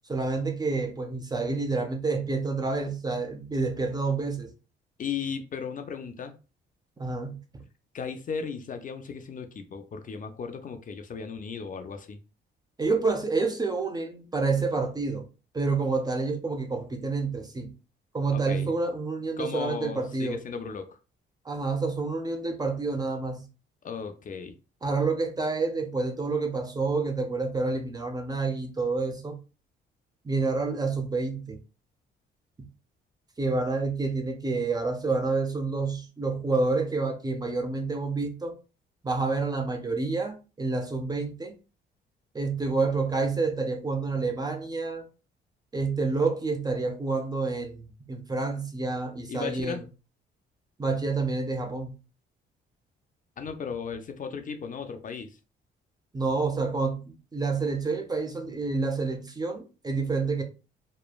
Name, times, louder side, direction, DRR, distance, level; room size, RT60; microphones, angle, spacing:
voice 1, 0.1-4.5 7.0-7.6 12.8-15.3 15.5-17.7 18.1-20.4 21.5-23.5 24.8-29.4 30.2-31.6 33.4-38.6 39.0-41.6 42.3-45.0 45.7-49.8 50.8-52.0 56.1-60.4, right 3 dB, 20° right, 0.5 m, -28 dB
voice 2, 5.0-6.4 7.9-12.2 18.3-18.7 19.4-21.0 23.8-24.5 49.3-49.8 53.4-55.4, left 6 dB, 45° left, 0.4 m, -36 dB
3.1 x 2.2 x 2.2 m
cardioid pair, 90°, 20 cm